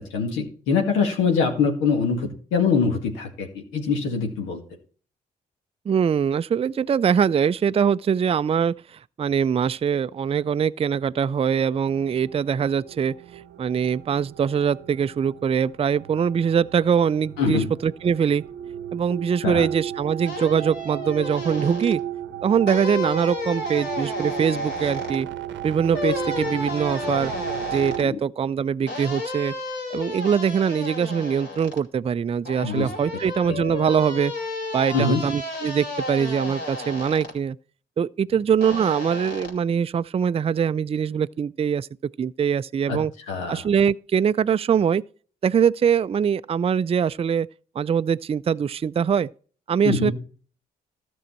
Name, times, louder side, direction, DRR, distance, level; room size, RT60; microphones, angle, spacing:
voice 1, 0.1-4.6 17.4-17.7 19.4-19.7 28.0-28.2 32.6-32.9 33.5-33.6 34.9-35.2 42.9-43.0 43.3-43.6 49.8-50.1, left 5 dB, 85° left, 2.0 m, -23 dB
voice 2, 5.9-18.4 18.9-22.0 22.4-25.3 25.6-27.3 27.7-29.5 29.9-34.3 34.7-37.6 38.0-41.9 42.2-43.1 43.5-45.0 45.4-47.5 47.8-49.3 49.7-50.1, right 7 dB, 30° right, 0.4 m, -23 dB
sound 1, 11.8-28.0, right 10 dB, 70° right, 0.8 m, -35 dB
sound 2, 20.2-21.9 22.7-25.2 25.9-28.1 28.9-31.8 32.4-37.3 38.6-39.5, left 2 dB, 60° left, 3.2 m, -32 dB
13.0 x 6.3 x 4.4 m
hypercardioid pair, 45°, 20 cm